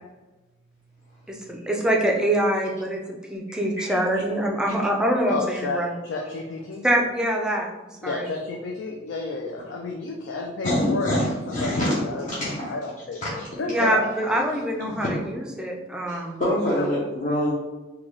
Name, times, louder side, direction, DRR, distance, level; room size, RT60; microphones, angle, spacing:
voice 1, 1.3-3.0 3.3-5.9 6.8-7.7 8.0-8.2 13.7-15.2 15.6-16.4, right 1 dB, 5° right, 0 dB, 0.4 m, -24 dB
voice 2, 3.5-4.0 10.6-12.7 13.2-13.5 13.8-13.9 14.8-15.1 16.1-17.6, left 1 dB, 40° left, -8 dB, 0.7 m, -26 dB
voice 3, 5.3-6.9 8.0-14.5 16.8-16.9, left 3 dB, 70° left, 1 dB, 0.4 m, -31 dB
3.6 x 2.2 x 3.1 m, 1.2 s
head